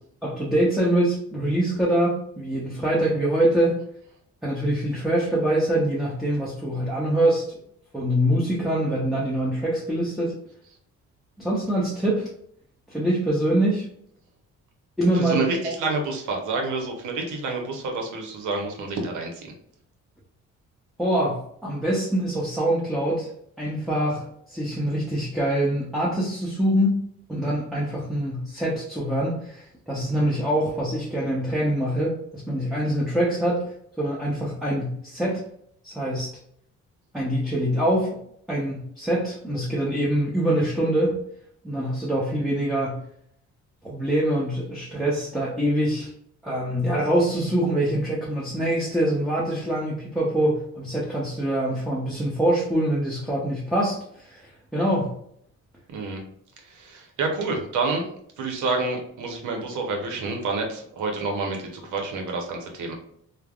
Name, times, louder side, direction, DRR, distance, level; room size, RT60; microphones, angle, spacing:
voice 1, 0.2-3.8 4.4-7.6 7.9-10.3 11.4-12.3 12.9-13.9 15.0-15.7 21.0-23.3 23.6-27.0 27.3-33.7 34.0-35.4 35.8-36.3 37.1-38.2 38.5-41.2 41.6-43.0 43.8-46.1 46.4-55.1, right 1 dB, ahead, -6 dB, 0.7 m, -24 dB
voice 2, 15.1-19.5 55.9-56.2 56.6-58.1 58.4-62.9, right 3 dB, 75° right, 2 dB, 0.8 m, -28 dB
3.2 x 2.1 x 2.3 m, 0.67 s
cardioid pair, 90°, 30 cm